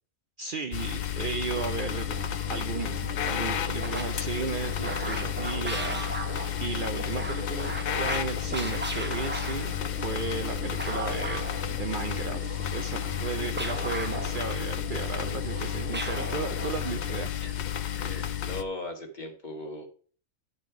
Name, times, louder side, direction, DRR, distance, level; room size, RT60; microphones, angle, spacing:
voice 1, 0.4-6.0 6.6-11.5 11.8-17.3, right 5 dB, 55° right, 7 dB, 0.6 m, -35 dB
sound 1, 0.7-18.6, left 10 dB, 65° left, 0.4 m, -32 dB
sound 2, 1.5-17.2, right 2 dB, 10° right, 0.6 m, -37 dB
voice 2, 17.4-19.9, left 2 dB, 40° left, 3 dB, 1.4 m, -39 dB
9.7 x 4.3 x 4.7 m, 0.43 s
omnidirectional pair, 1.3 m